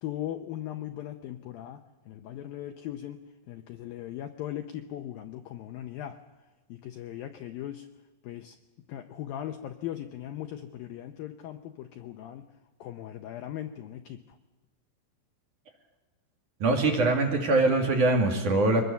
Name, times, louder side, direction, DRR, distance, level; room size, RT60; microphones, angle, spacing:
voice 1, 0.0-1.8 2.1-3.2 3.5-6.2 6.7-7.9 8.2-8.6 8.9-12.5 12.8-14.2, left 12 dB, 90° left, 7 dB, 2.0 m, -38 dB
voice 2, 16.6-18.8, right 2 dB, 50° right, 2 dB, 3.2 m, -23 dB
24.5 x 20.5 x 7.0 m, 1.2 s
omnidirectional pair, 5.4 m